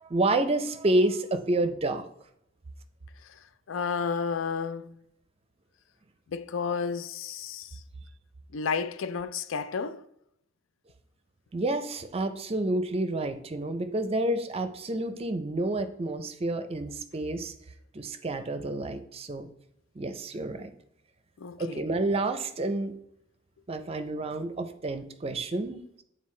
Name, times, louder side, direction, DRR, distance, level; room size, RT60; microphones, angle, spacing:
voice 1, 0.0-2.1 11.5-17.5 17.9-19.5 20.0-20.7 21.6-22.9 23.7-26.0, right 2 dB, 30° right, 0.5 m, -29 dB
voice 2, 3.7-4.9 6.3-7.7 8.5-10.0 21.4-21.8, left 5 dB, 85° left, 0.4 m, -31 dB
9.3 x 4.0 x 3.2 m
head